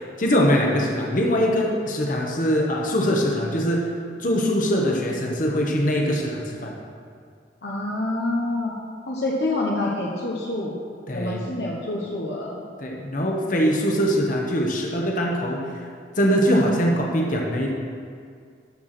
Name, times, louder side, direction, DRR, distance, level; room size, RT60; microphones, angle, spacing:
voice 1, 0.2-3.9 4.2-6.7 11.1-11.4 12.8-15.6 16.2-17.7, equal, 45° left, -1 dB, 1.3 m, -22 dB
voice 2, 7.6-8.7 9.1-10.8 11.1-12.5, left 2 dB, 65° left, -3 dB, 1.1 m, -27 dB
13.0 x 4.7 x 6.0 m, 2.2 s
head